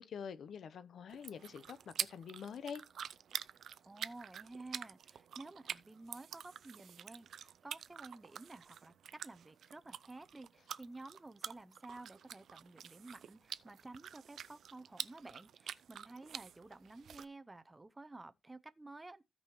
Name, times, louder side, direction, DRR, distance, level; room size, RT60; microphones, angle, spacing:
voice 1, 0.0-2.8, left 7 dB, 75° left, 0.7 m, -46 dB
sound 1, 1.1-17.2, right 8 dB, 80° right, 0.4 m, -47 dB
voice 2, 3.9-8.9 9.2-19.2, right 2 dB, 15° right, 0.6 m, -52 dB
16.0 x 5.4 x 3.0 m
wide cardioid pair, 155°, 0 cm